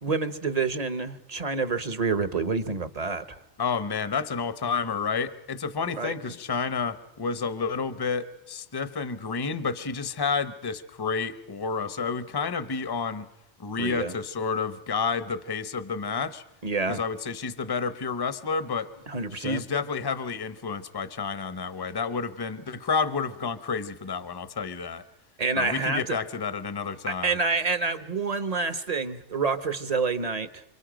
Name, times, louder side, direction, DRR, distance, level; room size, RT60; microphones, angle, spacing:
voice 1, 0.0-3.2 6.0-6.1 13.8-14.1 16.6-17.0 19.1-19.6 25.4-26.2 27.1-30.6, right 4 dB, 35° right, 12 dB, 0.9 m, -28 dB
voice 2, 3.6-13.3 13.6-16.4 16.9-18.9 19.3-25.1 25.6-27.4, left 5 dB, 25° left, 13 dB, 0.7 m, -30 dB
28.0 x 26.0 x 5.1 m, 0.89 s
omnidirectional pair, 1.2 m